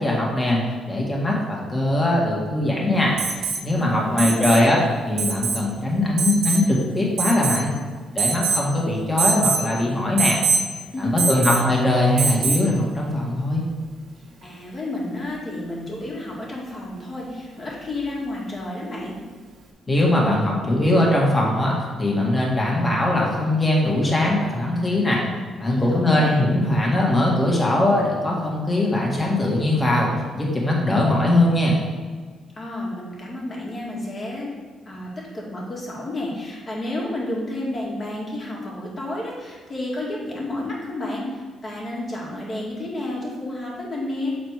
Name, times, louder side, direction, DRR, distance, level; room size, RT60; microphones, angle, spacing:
voice 1, 0.0-3.2 3.4-4.8 5.1-7.7 8.1-10.4 11.0-13.6 19.9-21.7 22.0-25.2 25.6-31.8, left 1 dB, 20° left, -3 dB, 1.8 m, -21 dB
Alarm, 3.2-3.6 4.2-4.6 5.2-5.6 6.2-6.6 7.2-7.7 8.2-8.7 9.2-9.6 10.2-10.6 11.2-11.7 12.2-12.7 14.4-14.5, right 4 dB, 75° right, 1.3 m, -23 dB
voice 2, 3.8-4.7 10.9-11.7 14.4-19.2 25.7-26.5 32.6-34.5 34.9-44.3, left 1 dB, 35° left, -3 dB, 2.1 m, -31 dB
6.9 x 4.1 x 4.7 m, 1.5 s
cardioid pair, 90°, 0 cm